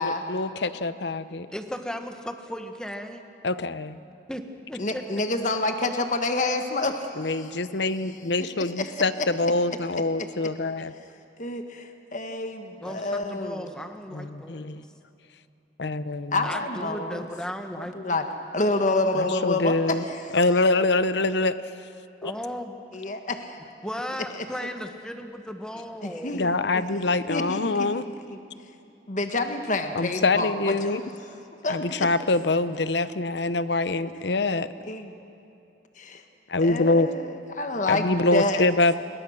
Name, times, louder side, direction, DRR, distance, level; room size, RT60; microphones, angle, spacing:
voice 1, 0.0-1.5 3.4-4.0 7.2-10.9 14.1-14.8 15.8-16.5 19.1-20.0 20.3-21.6 22.2-22.3 26.3-28.1 29.9-31.0 31.7-34.7 36.5-37.1 37.9-39.0, left 2 dB, 70° left, 13 dB, 0.8 m, -25 dB
voice 2, 1.5-3.2 4.3-5.0 12.8-14.8 16.4-18.0 22.2-22.8 23.8-26.4, equal, 5° left, 5 dB, 1.4 m, -36 dB
voice 3, 4.8-7.1 8.6-8.9 11.4-13.7 16.3-17.2 17.8-18.2 18.5-20.2 22.9-23.6 26.0-26.8 27.3-27.9 28.3-28.4 29.1-30.9 31.6-32.1 34.9-35.1 36.0-36.2 36.6-37.2 37.6-38.6, left 2 dB, 45° left, 6 dB, 1.4 m, -28 dB
30.0 x 22.0 x 6.5 m, 2.8 s
head